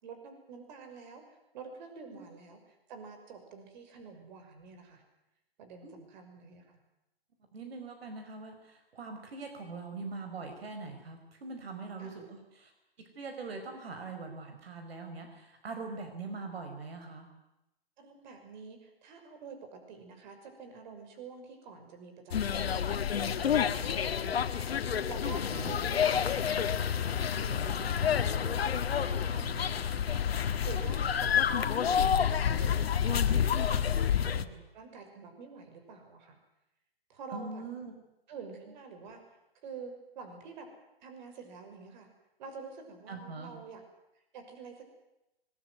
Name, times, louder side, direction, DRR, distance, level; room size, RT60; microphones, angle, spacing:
voice 1, 0.0-2.6 2.9-5.0 5.6-6.8 12.0-12.2 18.0-30.2 30.6-31.6 31.8-36.4 37.1-37.6 38.3-39.2 39.6-40.7 41.0-42.1 42.4-43.8 44.3-44.8, right 5 dB, 50° right, 5 dB, 6.0 m, -48 dB
voice 2, 7.5-12.7 13.2-17.3 25.5-25.7 37.3-37.9 43.1-43.5, right 4 dB, 75° right, 5 dB, 5.2 m, -42 dB
sound 1, 22.3-34.4, left 8 dB, 75° left, 1.8 m, -29 dB
21.5 x 20.5 x 9.5 m, 0.92 s
hypercardioid pair, 145°, 30 cm